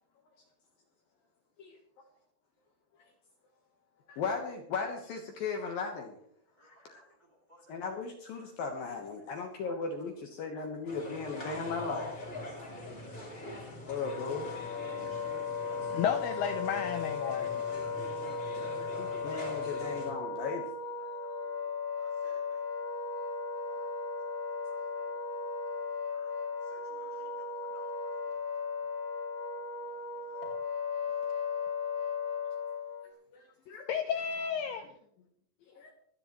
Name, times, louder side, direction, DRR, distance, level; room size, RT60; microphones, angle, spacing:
voice 1, 4.1-6.2 6.6-7.0 7.7-12.1 13.1-13.3 13.9-14.5 19.0-20.7 23.7-23.8 33.3-33.9 35.7-35.9, left 4 dB, 70° left, 2.4 m, -37 dB
voice 2, 6.6-7.8 8.3-8.5 8.9-10.5 11.0-11.4 13.0-14.5 17.4-20.1 21.0-22.9 23.5-25.5 25.8-28.7 29.7-31.1, equal, 30° right, 1.9 m, -62 dB
sound 1, 10.9-20.1, left 2 dB, 20° left, 2.1 m, -44 dB
Wind instrument woodwind instrument, 14.0-33.1, left 4 dB, 50° left, 1.4 m, -36 dB
voice 3, 15.9-17.8 33.9-34.9, left 8 dB, 90° left, 2.2 m, -32 dB
25.0 x 10.0 x 3.1 m
omnidirectional pair, 5.5 m